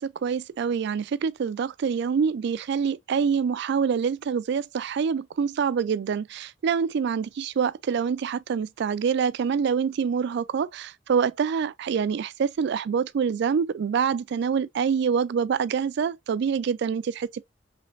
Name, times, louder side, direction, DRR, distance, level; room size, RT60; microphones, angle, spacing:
voice 1, 0.0-17.4, right 6 dB, 60° right, 0.3 m, -26 dB
5.0 x 3.2 x 2.5 m
head